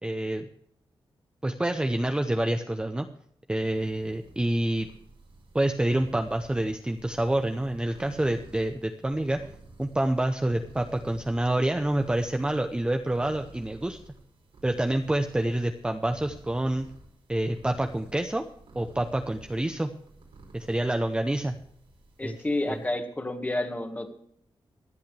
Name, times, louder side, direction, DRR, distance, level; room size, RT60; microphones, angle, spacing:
voice 1, 0.0-0.5 1.4-3.1 3.5-4.9 5.5-9.4 9.8-14.0 14.6-16.9 17.3-18.4 18.7-19.9 20.5-21.6 22.2-22.4 22.7-22.8, right 1 dB, 10° right, 6 dB, 0.7 m, -27 dB
sound 1, 3.6-22.9, right 2 dB, 90° right, 5.4 m, -51 dB
voice 2, 22.2-24.1, left 1 dB, 15° left, 5 dB, 1.7 m, -30 dB
25.0 x 8.4 x 3.3 m, 0.68 s
wide cardioid pair, 155°, 9 cm